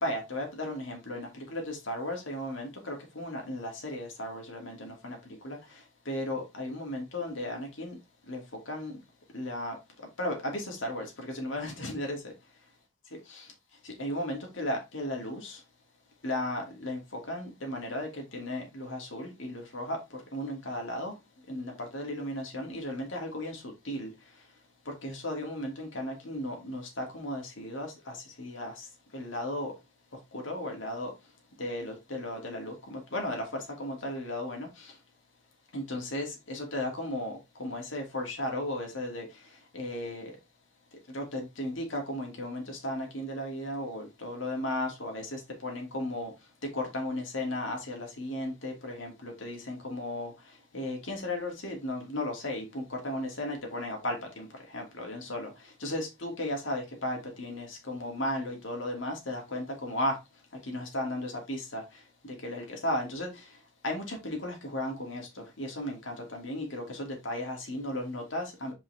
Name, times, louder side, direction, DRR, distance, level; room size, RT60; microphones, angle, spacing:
voice 1, 0.0-1.3 1.5-1.6 1.9-4.7 5.0-5.1 5.4-5.6 6.1-7.9 8.3-8.4 8.7-8.9 9.3-9.7 10.2-10.3 10.8-11.0 11.4-12.2 14.0-15.4 16.2-17.0 17.3-18.1 18.3-18.9 19.1-19.3 19.7-20.0 20.3-21.1 21.5-23.5 23.9-24.1 25.0-27.9 28.4-28.7 29.1-29.7 30.5-31.1 31.6-32.7 33.1-33.4 33.8-34.7 35.7-36.3 36.6-37.3 37.6-39.2 39.8-40.2 41.1-41.2 41.6-45.2 45.6-46.3 46.9-48.7 49.0-50.3 50.7-52.6 53.0-54.1 54.7-55.5 55.8-60.1 60.7-61.2 61.7-61.8 62.4-63.3 63.8-65.2 65.6-65.9 66.4-66.8 67.2-68.7, left 1 dB, 85° left, 2.6 m, -34 dB
5.5 x 5.2 x 3.5 m
head